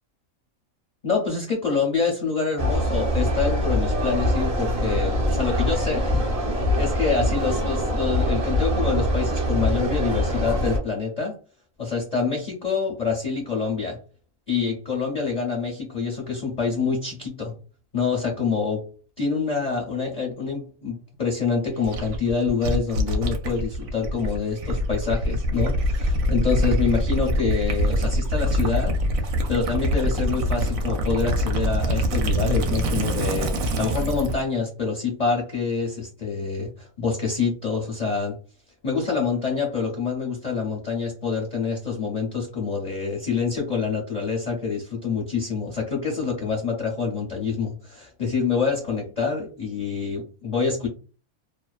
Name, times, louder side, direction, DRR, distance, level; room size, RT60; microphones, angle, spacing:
voice 1, 1.0-11.3 11.8-14.0 14.5-17.5 17.9-18.8 19.2-29.0 29.5-38.4 38.8-50.9, left 5 dB, 50° left, -1 dB, 0.5 m, -26 dB
sound 1, 2.6-10.8, equal, 40° right, 0.5 m, -23 dB
Gurgling / Liquid, 21.8-34.4, equal, 75° right, 1.0 m, -24 dB
2.6 x 2.1 x 2.3 m, 0.37 s
omnidirectional pair, 1.5 m